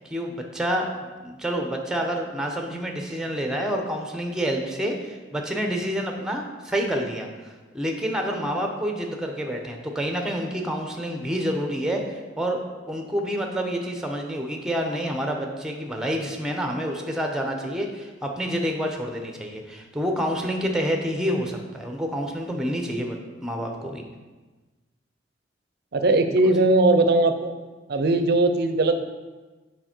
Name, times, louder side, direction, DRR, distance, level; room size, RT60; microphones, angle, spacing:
voice 1, 0.0-12.6 12.9-24.0, equal, 5° right, 2 dB, 0.8 m, -28 dB
voice 2, 25.9-27.5 27.9-29.0, right 2 dB, 60° right, 8 dB, 0.5 m, -19 dB
6.7 x 5.2 x 4.4 m, 1.3 s
head